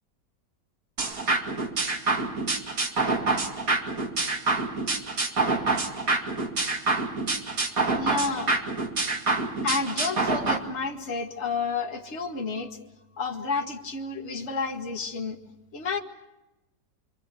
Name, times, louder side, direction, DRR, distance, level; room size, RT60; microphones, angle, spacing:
sound 1, 1.0-10.6, right 3 dB, 55° right, 2.7 m, -27 dB
voice 1, 7.9-8.6 9.6-12.8 13.2-15.4 15.7-16.0, left 4 dB, 40° left, 1 dB, 2.2 m, -30 dB
27.0 x 25.5 x 6.9 m, 0.97 s
omnidirectional pair, 1.8 m